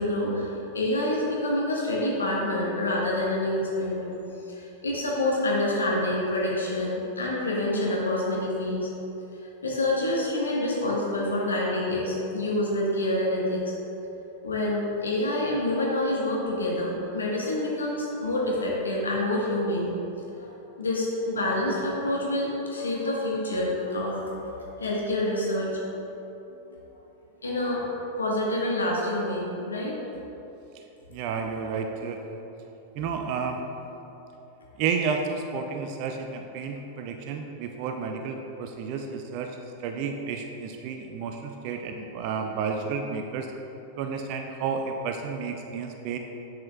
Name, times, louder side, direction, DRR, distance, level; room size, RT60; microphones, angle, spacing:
voice 1, 0.0-4.1 4.5-8.9 9.6-13.6 14.4-19.9 20.4-20.5 20.8-25.8 26.5-26.6 27.4-29.9, left 1 dB, 75° left, -4 dB, 1.4 m, -27 dB
voice 2, 31.1-32.2 33.0-33.6 34.8-39.5 39.8-43.5 44.0-46.2, right 5 dB, 45° right, 4 dB, 0.5 m, -31 dB
10.5 x 8.2 x 2.4 m, 3.0 s
figure-of-eight pair, 90°, 0 cm